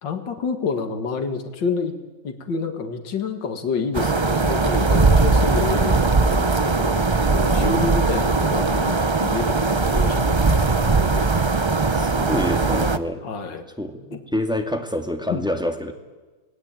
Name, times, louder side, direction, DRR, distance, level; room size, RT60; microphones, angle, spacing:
voice 1, 0.0-1.9 2.2-11.3 13.2-13.7 14.1-14.2 15.3-15.4, left 5 dB, 85° left, 7 dB, 2.6 m, -28 dB
sound 1, 3.9-13.0, right 3 dB, 30° right, 0.5 m, -19 dB
voice 2, 11.9-13.3 13.8-15.9, left 1 dB, ahead, 5 dB, 2.1 m, -27 dB
27.0 x 19.5 x 8.9 m, 1.3 s
omnidirectional pair, 1.9 m